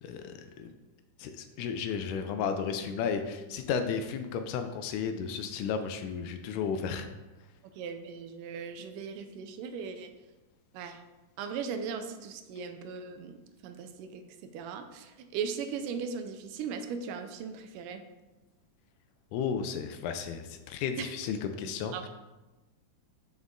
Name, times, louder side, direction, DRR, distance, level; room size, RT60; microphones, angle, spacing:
voice 1, 0.0-0.7 1.2-7.1 19.3-21.9, left 6 dB, 80° left, 8 dB, 2.0 m, -33 dB
voice 2, 7.6-10.1 10.7-11.0 11.4-18.0 21.0-21.1 21.9-22.1, right 6 dB, 85° right, 7 dB, 2.1 m, -38 dB
6.0 x 5.3 x 3.6 m, 1.1 s
omnidirectional pair, 3.7 m